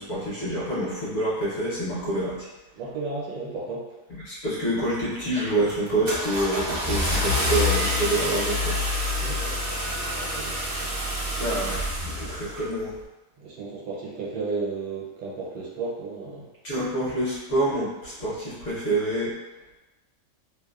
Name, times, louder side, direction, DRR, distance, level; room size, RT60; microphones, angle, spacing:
voice 1, 0.0-2.5 4.2-8.8 11.4-13.0 16.6-19.3, right 1 dB, 55° left, -8 dB, 1.0 m, -27 dB
voice 2, 2.7-3.9 9.2-11.6 13.4-16.5, right 4 dB, 75° right, -4 dB, 1.2 m, -34 dB
Car / Engine starting, 4.9-5.2 5.7-12.7, left 1 dB, 60° right, 0.7 m, -27 dB
2.9 x 2.0 x 2.3 m, 1.0 s
omnidirectional pair, 1.8 m